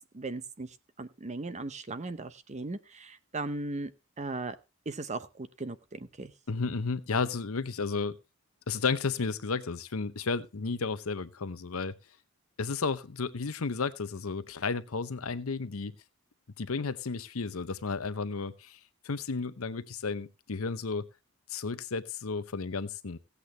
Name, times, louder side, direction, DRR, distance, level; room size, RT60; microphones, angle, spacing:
voice 1, 0.1-3.9 4.2-4.6 4.9-6.3, right 2 dB, 35° right, 12 dB, 0.8 m, -37 dB
voice 2, 6.5-8.2 8.7-12.0 12.6-15.9 16.6-18.8 19.0-21.1 21.5-23.2, left 4 dB, 70° left, 14 dB, 0.8 m, -33 dB
16.5 x 8.4 x 3.3 m, 0.27 s
head